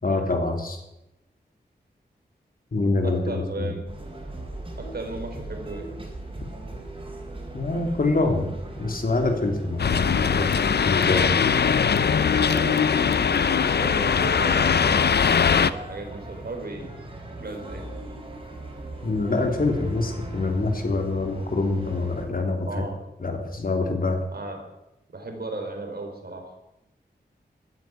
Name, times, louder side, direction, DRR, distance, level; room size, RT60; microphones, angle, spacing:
voice 1, 0.0-0.8 2.7-3.7 7.5-8.5 8.8-11.4 19.0-22.8 23.2-24.2, left 3 dB, 55° left, 3 dB, 3.1 m, -25 dB
voice 2, 3.0-3.9 4.8-5.9 12.4-15.3 15.6-16.9 17.4-17.8 22.6-23.0 24.3-24.6 25.1-26.5, right 2 dB, 65° right, 4 dB, 4.0 m, -36 dB
sound 1, 3.9-22.2, right 2 dB, 30° right, 4.6 m, -39 dB
sound 2, 9.8-15.7, left 6 dB, 70° left, 0.7 m, -21 dB
15.0 x 9.9 x 9.2 m, 0.91 s
wide cardioid pair, 95°, 18 cm